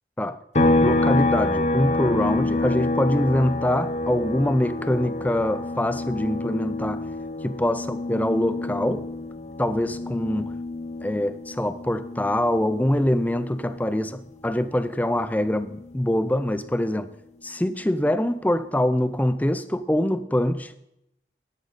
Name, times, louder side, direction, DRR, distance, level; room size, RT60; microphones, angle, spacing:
sound 1, 0.5-14.1 14.4-16.6, left 2 dB, 40° left, 0.9 m, -27 dB
voice 1, 0.8-7.1 7.4-9.1 9.6-10.5 11.0-17.1 17.4-20.7, left 1 dB, 10° left, 0.5 m, -24 dB
12.5 x 11.5 x 4.1 m
head